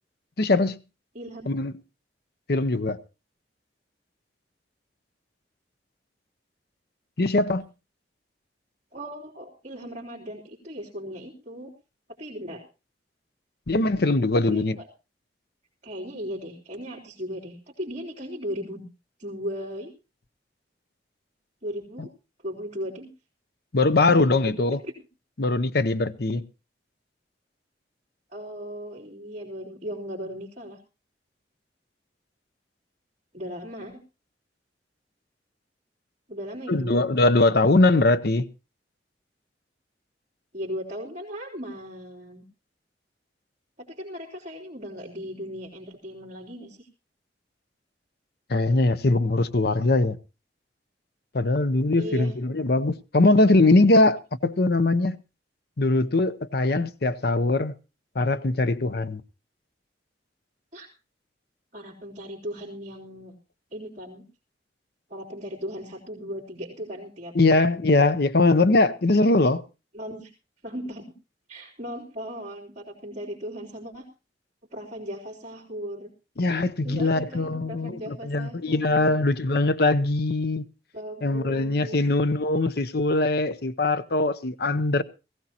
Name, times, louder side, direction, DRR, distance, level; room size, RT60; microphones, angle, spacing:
voice 1, 0.4-0.8 1.5-1.7 2.5-3.0 7.2-7.6 13.7-14.8 23.7-24.8 25.4-26.4 36.7-38.5 48.5-50.2 51.3-55.2 55.8-57.7 58.1-59.2 67.3-69.6 76.4-80.6 81.2-85.0, left 2 dB, 60° left, 0.8 m, -21 dB
voice 2, 1.1-1.5 8.9-11.7 12.2-12.6 14.3-14.9 15.8-18.9 19.2-19.9 21.6-22.1 22.4-23.1 24.1-24.5 24.8-24.9 28.3-30.8 33.3-34.0 36.3-37.0 40.5-42.5 43.8-46.9 52.0-52.3 60.7-60.9 61.7-63.4 63.7-64.3 65.1-67.7 69.9-70.3 70.6-71.1 71.5-74.1 74.7-76.1 76.8-79.2 80.9-82.1, equal, 40° right, 3.5 m, -37 dB
19.0 x 16.0 x 2.9 m
head